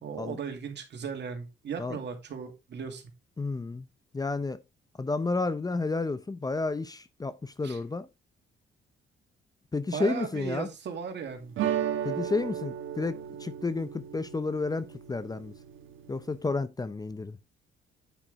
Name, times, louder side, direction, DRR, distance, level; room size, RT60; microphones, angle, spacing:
voice 1, 0.0-3.0 7.6-7.8 9.9-11.5, right 6 dB, 60° right, 2.4 m, -37 dB
voice 2, 3.4-3.9 4.1-4.6 5.0-8.1 9.7-10.7 12.0-15.5 16.1-17.4, left 3 dB, 20° left, 0.7 m, -31 dB
sound 1, 11.6-16.4, right 10 dB, 85° right, 1.5 m, -35 dB
9.2 x 5.9 x 3.6 m
cardioid pair, 90°, 20 cm